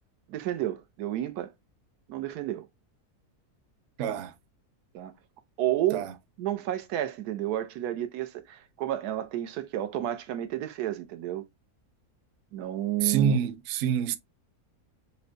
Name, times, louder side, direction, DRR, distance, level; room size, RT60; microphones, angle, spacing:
voice 1, 0.3-1.5 2.1-2.7 4.9-5.1 5.6-6.1 6.4-11.4 12.5-13.4, right 13 dB, 85° right, 1.2 m, -31 dB
voice 2, 4.0-4.3 5.9-6.1 13.0-14.2, right 7 dB, 70° right, 0.7 m, -26 dB
5.6 x 2.1 x 2.4 m
omnidirectional pair, 1.6 m